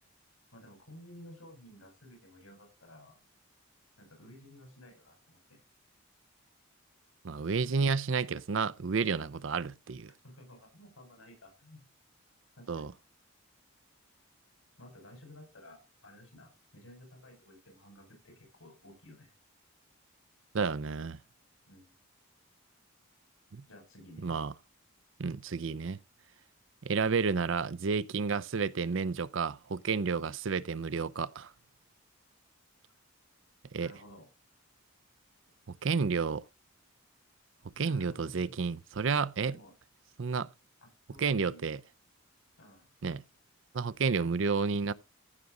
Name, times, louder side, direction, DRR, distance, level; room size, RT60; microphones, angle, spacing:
voice 1, 0.5-3.2 4.0-5.6 10.2-11.9 12.6-12.9 14.8-19.3 21.7-22.0 23.6-24.4 33.8-34.3 37.8-38.5 39.5-39.7 40.8-41.6 42.6-42.9, left 1 dB, 80° left, 5.0 m, -54 dB
voice 2, 7.2-10.1 12.7-12.9 20.5-21.2 23.5-23.6 24.2-24.5 25.2-26.0 26.8-31.5 33.7-33.9 35.8-36.4 37.8-39.6 40.2-40.5 41.2-41.8 43.0-43.2 43.7-44.9, right 5 dB, 60° right, 0.5 m, -31 dB
15.0 x 6.0 x 3.8 m
head